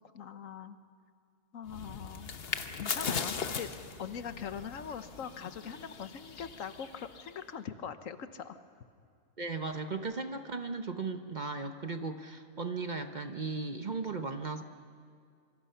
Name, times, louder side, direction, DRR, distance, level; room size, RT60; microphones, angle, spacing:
voice 1, 0.1-0.8 1.5-2.3 2.7-3.7 4.0-8.6, left 7 dB, 75° left, 10 dB, 1.3 m, -42 dB
sound 1, 1.7-7.4, left 6 dB, 50° left, 1.1 m, -39 dB
voice 2, 9.4-14.6, right 4 dB, 40° right, 7 dB, 0.9 m, -36 dB
26.0 x 25.0 x 5.6 m, 2.2 s
omnidirectional pair, 1.4 m